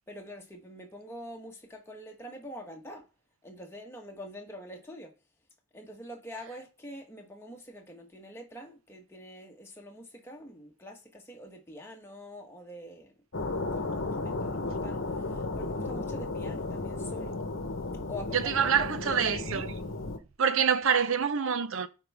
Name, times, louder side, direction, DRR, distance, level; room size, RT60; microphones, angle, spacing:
voice 1, 0.1-3.0 3.4-5.1 5.7-13.1 13.5-15.0 15.3-17.4 18.1-19.7, equal, 10° left, 1.2 m, -45 dB
sound 1, 13.3-20.2, left 2 dB, 60° left, 1.0 m, -34 dB
voice 2, 18.3-19.7 20.4-21.9, right 7 dB, 65° right, 0.6 m, -26 dB
11.5 x 4.6 x 3.5 m
head